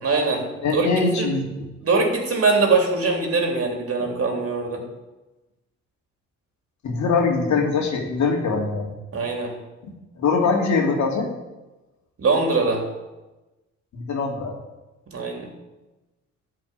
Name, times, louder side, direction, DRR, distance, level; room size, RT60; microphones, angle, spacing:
voice 1, 0.0-0.4 0.7-0.9 1.2-1.3 1.8-4.8 9.1-9.5 12.2-12.8 15.1-15.5, right 3 dB, 50° right, 1 dB, 3.5 m, -22 dB
voice 2, 0.6-1.5 6.8-8.9 9.8-11.3 13.9-14.6, left 4 dB, 70° left, 2 dB, 2.5 m, -22 dB
13.5 x 5.8 x 9.3 m, 1.1 s
cardioid pair, 90°, 30 cm